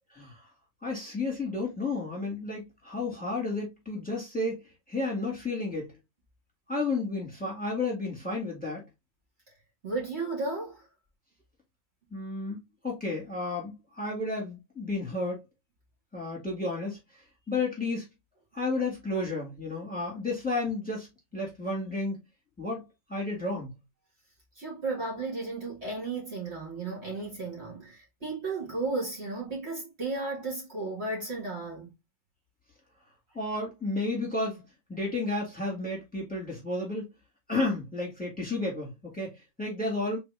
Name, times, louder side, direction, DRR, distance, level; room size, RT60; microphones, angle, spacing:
voice 1, 0.1-0.5 0.8-4.6 4.9-5.9 6.7-8.8 12.1-15.4 16.1-17.0 17.5-18.1 18.5-21.1 21.3-22.2 22.6-23.7 33.3-34.6 34.9-37.1 37.5-40.2, left 2 dB, 5° left, 2.0 m, -32 dB
voice 2, 9.8-10.9 24.6-31.9, right 3 dB, 50° right, 2.0 m, -34 dB
3.8 x 3.4 x 3.3 m
omnidirectional pair, 1.5 m